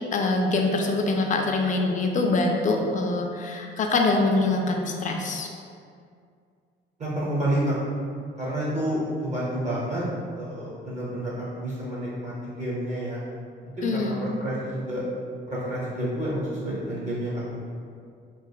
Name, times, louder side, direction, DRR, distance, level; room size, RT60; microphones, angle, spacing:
voice 1, 0.0-5.5 13.8-14.3, left 3 dB, 40° left, 2 dB, 0.4 m, -24 dB
voice 2, 7.0-7.8 8.4-10.0 10.4-13.2 13.8-15.0 15.5-17.6, right 1 dB, 35° right, -7 dB, 0.8 m, -29 dB
3.0 x 2.4 x 2.2 m, 2.2 s
cardioid pair, 90°, 20 cm